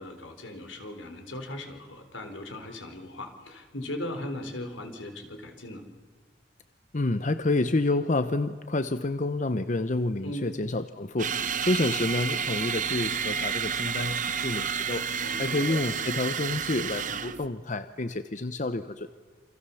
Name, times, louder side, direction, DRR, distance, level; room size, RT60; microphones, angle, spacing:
voice 1, 0.0-5.8 10.2-10.5 15.2-15.6, left 1 dB, 85° left, 6 dB, 3.7 m, -38 dB
voice 2, 6.9-15.0 15.4-19.1, left 2 dB, 40° left, 11 dB, 0.8 m, -29 dB
sound 1, 11.2-17.5, right 6 dB, 40° right, 0.9 m, -30 dB
28.5 x 25.0 x 7.0 m, 1.5 s
head